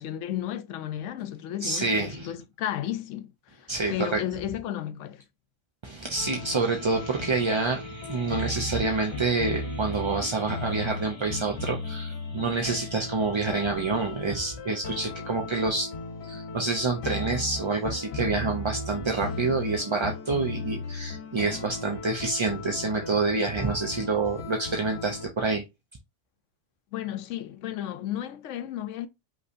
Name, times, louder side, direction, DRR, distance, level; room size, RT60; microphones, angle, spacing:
voice 1, 0.0-3.3 3.6-5.2 26.9-29.1, left 11 dB, 90° left, 1.0 m, -33 dB
voice 2, 1.6-2.3 3.7-4.2 5.8-15.9 16.2-25.6, right 3 dB, 35° right, 0.5 m, -27 dB
sound 1, 6.1-25.3, left 2 dB, 65° left, 1.3 m, -36 dB
5.4 x 3.1 x 2.6 m
omnidirectional pair, 1.2 m